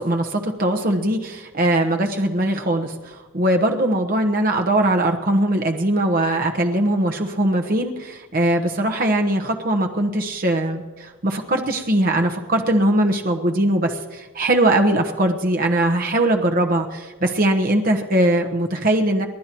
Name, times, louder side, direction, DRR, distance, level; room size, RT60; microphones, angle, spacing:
voice 1, 0.0-19.3, right 1 dB, 45° right, 3 dB, 1.1 m, -20 dB
29.5 x 11.5 x 3.1 m, 1.3 s
head